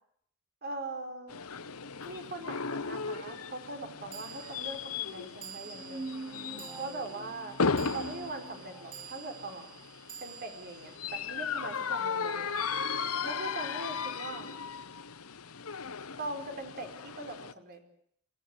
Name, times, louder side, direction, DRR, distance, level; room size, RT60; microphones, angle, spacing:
voice 1, 0.6-1.3 2.0-6.2 6.8-7.6 7.9-9.7 10.2-12.6 13.2-14.5 16.2-17.8, right 2 dB, 45° right, 6 dB, 4.8 m, -41 dB
sound 1, 1.3-17.5, left 5 dB, 75° left, 1.1 m, -36 dB
sound 2, 2.0-2.1 4.1-12.5, right 10 dB, 85° right, 3.1 m, -50 dB
sound 3, 5.6-9.1, right 2 dB, 10° right, 1.1 m, -44 dB
25.0 x 16.0 x 9.5 m, 0.67 s
head